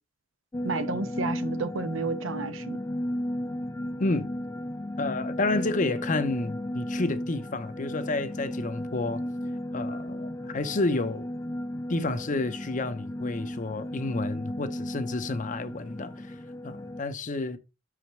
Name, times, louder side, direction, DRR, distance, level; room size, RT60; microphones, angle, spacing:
sound 1, 0.5-17.0, left 1 dB, 15° left, 0.3 m, -34 dB
voice 1, 0.6-2.8, right 3 dB, 75° right, 0.8 m, -31 dB
voice 2, 5.0-9.2 9.7-11.3 11.9-16.4 16.6-17.6, left 2 dB, 40° left, 0.7 m, -30 dB
6.1 x 5.0 x 4.5 m
head